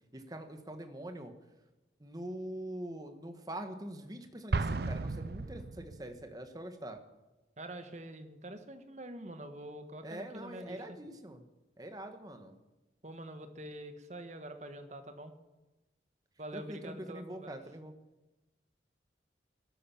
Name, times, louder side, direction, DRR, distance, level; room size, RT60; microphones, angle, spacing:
voice 1, 0.1-1.3 2.0-7.0 10.0-11.4 11.8-12.5 16.5-17.9, right 1 dB, 20° right, 6 dB, 1.4 m, -44 dB
Explosion, 4.5-6.3, right 3 dB, 60° right, 0.6 m, -34 dB
voice 2, 7.6-10.8 13.0-15.3 16.4-17.5, right 1 dB, 40° right, 8 dB, 1.5 m, -45 dB
16.5 x 12.0 x 7.2 m, 1.1 s
head